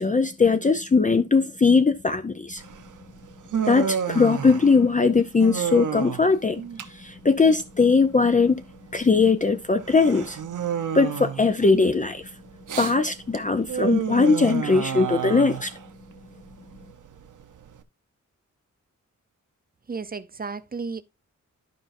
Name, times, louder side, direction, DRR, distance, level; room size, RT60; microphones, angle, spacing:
voice 1, 0.0-2.6 3.7-6.6 6.9-8.6 8.9-10.4 10.9-12.2 12.8-15.7, left 4 dB, 25° left, 0.5 m, -20 dB
Human voice, 2.6-17.8, right 8 dB, 75° right, 0.9 m, -32 dB
voice 2, 19.9-21.0, right 4 dB, 30° right, 0.5 m, -33 dB
12.0 x 5.2 x 2.6 m
wide cardioid pair, 120°, 31 cm